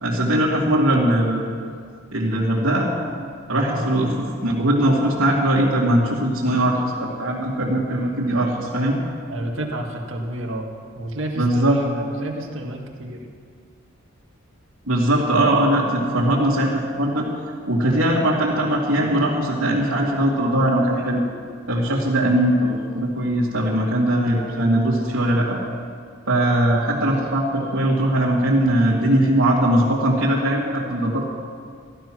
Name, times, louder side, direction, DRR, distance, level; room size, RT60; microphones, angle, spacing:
voice 1, 0.0-1.4 2.1-2.9 3.5-9.0 11.4-11.8 14.9-17.3 17.7-21.2 21.7-25.6 26.3-31.2, right 1 dB, 80° right, -8 dB, 2.4 m, -20 dB
voice 2, 9.3-10.7 11.0-13.3 21.9-22.1, right 1 dB, 65° right, 1 dB, 1.9 m, -30 dB
14.5 x 13.0 x 6.2 m, 2.1 s
head